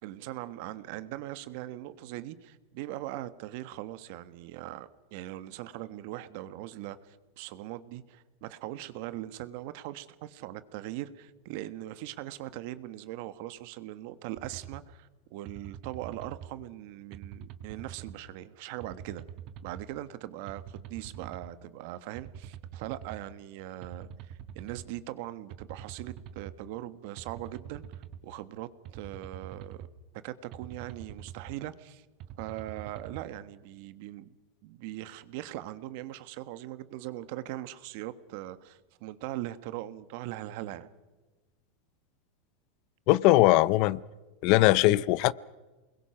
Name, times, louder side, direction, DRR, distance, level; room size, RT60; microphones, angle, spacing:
voice 1, 0.0-19.2 19.6-29.8 30.2-32.0 32.4-34.4 34.6-40.9, right 14 dB, 60° right, 1.4 m, -40 dB
sound 1, 14.4-14.8 15.5-16.5 17.1-18.2 18.8-19.8 20.5-21.5 22.2-23.2 23.8-24.9 25.5-26.5 27.2-28.2 28.8-29.9 30.5-31.6 32.2-33.2, right 9 dB, 45° right, 1.4 m, -44 dB
voice 2, 43.1-44.0 44.4-45.3, left 17 dB, 50° left, 0.6 m, -21 dB
28.5 x 21.5 x 5.9 m
supercardioid pair, 140°, 0 cm